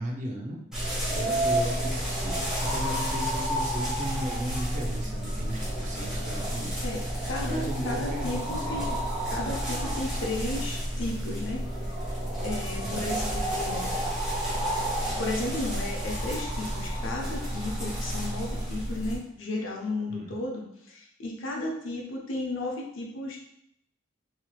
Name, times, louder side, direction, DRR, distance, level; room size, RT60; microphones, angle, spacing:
voice 1, 0.0-6.8 7.4-8.9 12.7-13.0 20.1-20.3, equal, 40° right, 0 dB, 0.5 m, -36 dB
sound 1, 0.7-19.2, right 1 dB, 5° right, 0.8 m, -30 dB
voice 2, 6.8-9.0 9.3-12.0 12.4-13.9 14.8-14.9 15.2-23.4, left 2 dB, 75° left, 0 dB, 0.6 m, -34 dB
2.9 x 2.8 x 2.3 m, 0.77 s
head